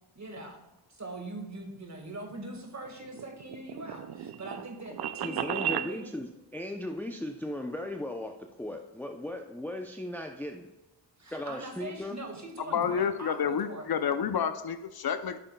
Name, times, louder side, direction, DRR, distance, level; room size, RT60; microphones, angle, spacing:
voice 1, 0.2-0.6 0.9-6.1 11.2-13.9, right 2 dB, 35° right, 3 dB, 1.9 m, -42 dB
sound 1, 2.9-5.9, right 9 dB, 55° right, 0.6 m, -34 dB
voice 2, 5.2-10.7 11.3-12.2, left 1 dB, 5° left, 3 dB, 0.6 m, -37 dB
voice 3, 12.7-15.4, left 7 dB, 55° left, 10 dB, 0.6 m, -29 dB
10.0 x 6.4 x 2.3 m, 1.0 s
cardioid pair, 50°, 46 cm